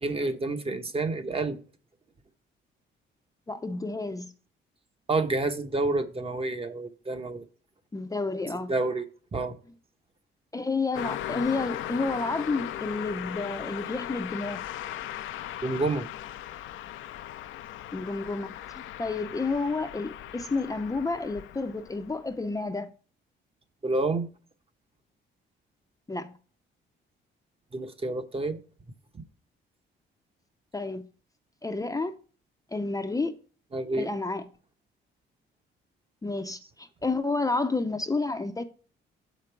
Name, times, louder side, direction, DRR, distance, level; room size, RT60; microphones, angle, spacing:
voice 1, 0.0-1.6 5.1-7.4 8.7-9.1 9.3-9.6 15.6-16.1 23.8-24.3 27.7-28.6 29.1-29.2 33.7-34.1, right 2 dB, 30° right, 0.9 m, -28 dB
voice 2, 3.5-4.3 7.9-8.7 10.5-14.6 17.9-22.9 26.1-26.3 30.7-31.0 31.6-32.1 32.7-33.4 34.0-34.4 36.2-38.6, left 3 dB, 15° left, 0.6 m, -30 dB
Car passing by, 10.9-22.4, left 12 dB, 85° left, 0.6 m, -38 dB
6.5 x 5.2 x 4.5 m
cardioid pair, 90°, 20 cm